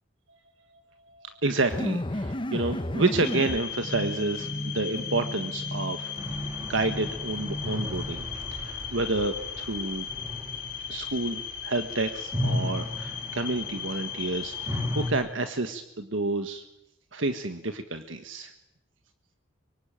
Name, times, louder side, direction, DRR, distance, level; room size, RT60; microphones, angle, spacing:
voice 1, 1.1-6.2 6.7-10.1 10.9-16.6 17.1-18.5, right 2 dB, 65° right, 8 dB, 1.6 m, -30 dB
sound 1, 1.7-8.1, left 1 dB, 25° left, 1.0 m, -34 dB
sound 2, 3.2-15.1, left 8 dB, 45° left, 5.6 m, -37 dB
sound 3, 6.2-11.8 12.2-15.1, left 1 dB, 15° right, 2.5 m, -35 dB
24.5 x 24.0 x 9.0 m, 0.83 s
head